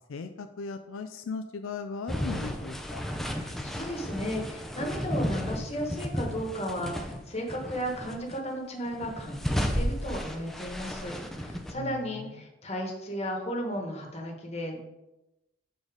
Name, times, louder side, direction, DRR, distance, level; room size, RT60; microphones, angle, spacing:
voice 1, 0.1-3.0 11.7-12.5, left 4 dB, 85° left, 7 dB, 0.4 m, -38 dB
sound 1, 2.1-7.2 7.5-8.4 8.9-11.7, equal, ahead, 0.5 m, -33 dB
voice 2, 3.2-14.8, equal, 35° left, 1 dB, 1.3 m, -34 dB
7.0 x 4.0 x 4.9 m, 0.98 s
head